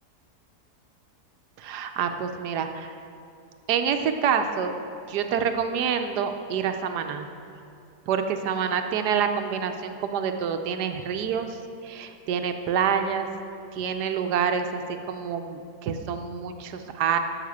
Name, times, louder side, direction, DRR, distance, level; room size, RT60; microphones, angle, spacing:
voice 1, 1.6-2.9 3.7-4.7 5.1-7.3 8.1-11.6 11.8-13.3 13.7-14.8 15.1-17.2, right 7 dB, 80° right, 7 dB, 1.3 m, -27 dB
12.5 x 5.8 x 7.1 m, 2.6 s
omnidirectional pair, 1.7 m